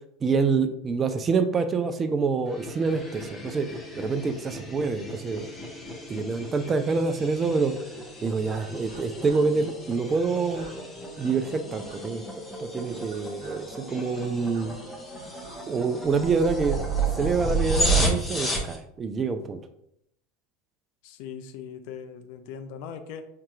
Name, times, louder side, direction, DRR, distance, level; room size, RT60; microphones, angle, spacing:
voice 1, 0.2-3.7 3.9-5.5 6.1-7.8 8.2-10.7 11.2-12.2 12.6-14.8 15.7-16.8 17.1-19.6, right 4 dB, 25° right, 8 dB, 0.4 m, -26 dB
sound 1, 2.5-18.8, right 2 dB, 15° left, 0.8 m, -32 dB
sound 2, 8.4-17.7, right 3 dB, 65° right, 0.9 m, -47 dB
voice 2, 21.0-23.3, left 7 dB, 60° left, 8 dB, 0.4 m, -40 dB
4.6 x 2.8 x 2.3 m, 0.76 s
hypercardioid pair, 80°, 0 cm